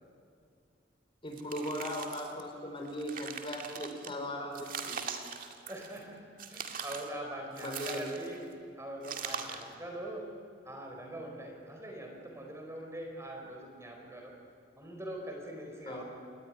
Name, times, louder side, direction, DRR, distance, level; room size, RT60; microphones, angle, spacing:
voice 1, 1.2-5.0 7.6-8.2 15.9-16.0, equal, 30° left, 2 dB, 5.1 m, -38 dB
sound 1, 1.3-2.4 2.8-4.1 4.5-6.0 6.4-7.1 7.6-8.4 9.0-9.7, right 6 dB, 50° right, 2.1 m, -41 dB
voice 2, 5.7-6.2 6.5-8.4 8.8-10.3 10.6-14.3 14.8-16.0, right 1 dB, 15° right, 2 dB, 3.9 m, -43 dB
28.5 x 20.5 x 9.9 m, 2.3 s
head